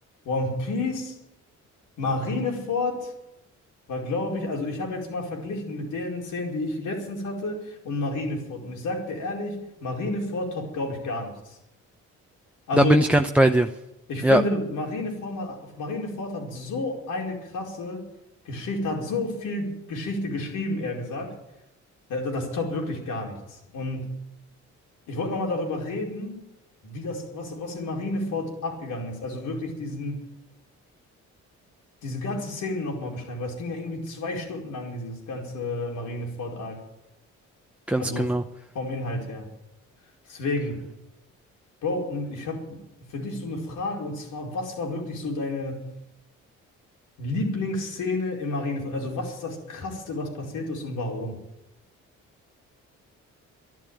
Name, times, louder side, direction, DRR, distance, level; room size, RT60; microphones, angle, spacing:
voice 1, 0.2-1.2 2.0-3.1 3.9-11.6 12.7-13.0 14.1-18.1 18.4-21.3 22.1-24.1 25.1-26.4 26.8-30.3 32.0-36.8 38.0-38.3 38.7-39.5 40.3-40.8 41.8-42.8 43.1-45.9 47.2-51.4, left 2 dB, 80° left, -1 dB, 4.9 m, -30 dB
voice 2, 12.8-13.7 14.2-14.4 37.9-38.4, right 1 dB, 5° right, 7 dB, 0.7 m, -19 dB
12.0 x 11.5 x 9.0 m, 0.91 s
cardioid pair, 90°, 30 cm